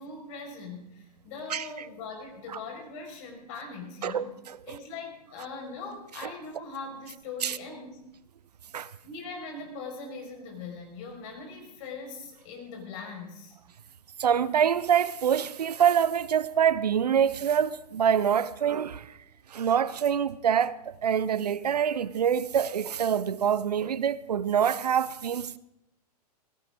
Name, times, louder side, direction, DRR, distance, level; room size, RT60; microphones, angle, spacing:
voice 1, 0.0-4.3 4.7-8.0 9.0-13.6, left 4 dB, 50° left, 5.3 m, -41 dB
voice 2, 4.0-4.6 7.4-7.6 8.7-8.9 14.2-19.1 19.5-25.6, right 8 dB, 80° right, 0.7 m, -25 dB
17.0 x 16.0 x 3.7 m
hypercardioid pair, 110°, 20 cm